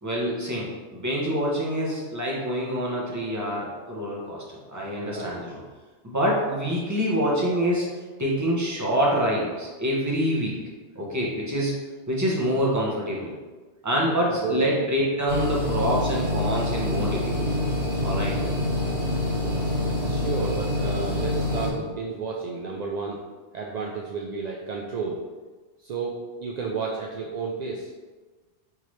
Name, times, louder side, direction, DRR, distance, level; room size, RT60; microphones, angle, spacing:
voice 1, 0.0-4.4 4.7-5.6 6.0-7.9 8.2-10.6 10.9-11.7 12.1-13.3 13.8-17.4 18.0-18.4, equal, 15° right, -4 dB, 0.9 m, -26 dB
voice 2, 4.7-5.4 13.9-14.7 18.1-18.4 19.7-19.8 20.1-23.2 23.5-25.2 25.8-27.9, right 4 dB, 60° right, -2 dB, 0.4 m, -32 dB
sound 1, 15.3-21.7, left 1 dB, 85° right, 2.0 m, -26 dB
5.6 x 2.8 x 3.2 m, 1.3 s
omnidirectional pair, 1.2 m